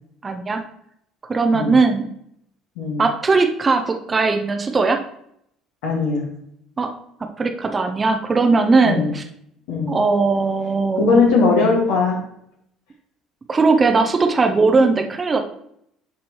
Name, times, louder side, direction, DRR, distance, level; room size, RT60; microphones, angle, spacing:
voice 1, 0.2-0.6 1.3-2.1 3.0-5.0 6.8-6.9 7.4-9.2 9.9-11.2 13.5-15.5, right 4 dB, 25° right, 5 dB, 0.9 m, -18 dB
voice 2, 5.8-6.2 8.8-9.1 9.7-9.9 11.0-12.2, left 4 dB, 65° left, -1 dB, 2.1 m, -18 dB
11.0 x 4.3 x 3.1 m, 0.72 s
figure-of-eight pair, 55°, 0 cm